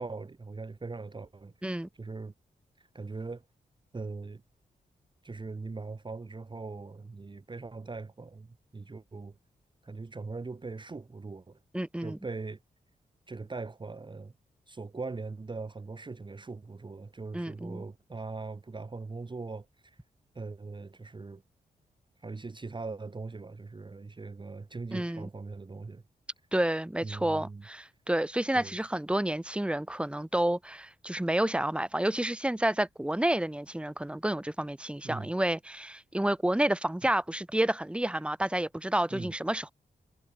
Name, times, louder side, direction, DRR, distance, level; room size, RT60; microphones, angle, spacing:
voice 1, 0.0-1.5 2.0-2.3 2.8-3.4 3.9-4.4 5.2-9.4 9.8-11.6 12.0-12.6 13.3-14.3 14.7-20.0 20.3-21.4 22.2-26.0 27.0-27.7 28.5-28.8 35.0-35.3 37.0-37.1 39.1-39.3, right 3 dB, 30° right, 0.9 m, -40 dB
voice 2, 11.7-12.2 17.3-17.8 24.9-25.3 26.5-39.7, right 1 dB, 5° right, 1.2 m, -30 dB
supercardioid pair, 45°, 17 cm